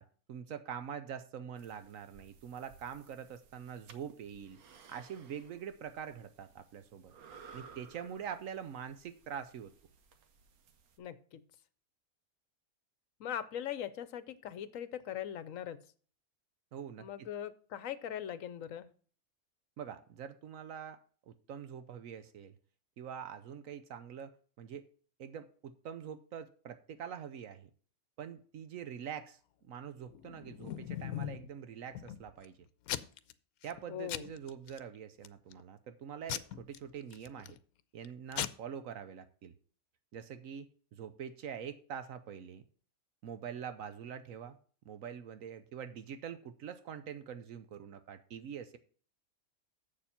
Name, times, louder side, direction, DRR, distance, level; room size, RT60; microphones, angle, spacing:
voice 1, 0.0-4.6 4.9-7.1 7.5-9.7 16.7-17.3 19.8-21.0 21.3-22.6 23.0-24.9 25.2-27.7 28.2-32.6 33.6-37.6 37.9-39.5 40.1-42.6 43.2-44.6 44.9-48.8, right 8 dB, 75° right, 11 dB, 1.1 m, -45 dB
sound 1, 1.6-11.0, right 5 dB, 90° right, 1.3 m, -59 dB
voice 2, 11.0-11.4 13.2-15.8 17.0-18.9 33.9-34.3, left 10 dB, 70° left, 14 dB, 1.1 m, -40 dB
Packing tape duct tape / Tearing, 30.1-31.5 32.0-32.5 32.9-33.3 33.6-33.8 34.1-34.8 35.3-35.6 36.3-37.6 38.0-38.1 38.3-38.5, left 12 dB, 90° left, 1.1 m, -39 dB
7.5 x 6.9 x 5.7 m, 0.43 s
omnidirectional pair, 1.5 m